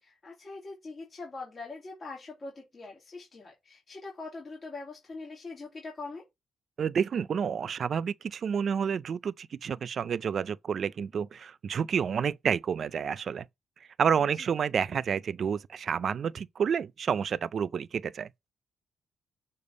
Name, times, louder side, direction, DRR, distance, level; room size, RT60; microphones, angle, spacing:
voice 1, 0.0-6.2 14.3-14.5, left 3 dB, 30° left, 2.2 m, -43 dB
voice 2, 6.8-13.5 14.0-18.3, right 7 dB, 45° right, 0.3 m, -29 dB
6.7 x 3.4 x 5.2 m
cardioid pair, 165°, 0 cm